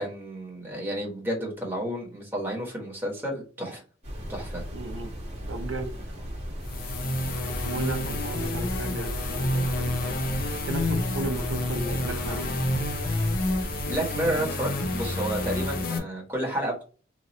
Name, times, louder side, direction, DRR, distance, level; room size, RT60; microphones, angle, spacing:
voice 1, 0.0-3.8 4.3-4.6 13.9-16.8, right 1 dB, 10° right, -2 dB, 1.2 m, -31 dB
sound 1, 4.0-14.0, equal, 35° right, 1.2 m, -36 dB
voice 2, 4.7-5.1 5.5-5.9 7.6-10.2 10.7-12.5, right 2 dB, 80° right, 4 dB, 0.7 m, -34 dB
sound 2, 6.6-16.0, left 1 dB, 50° left, 0.7 m, -29 dB
3.0 x 2.6 x 4.0 m, 0.36 s
head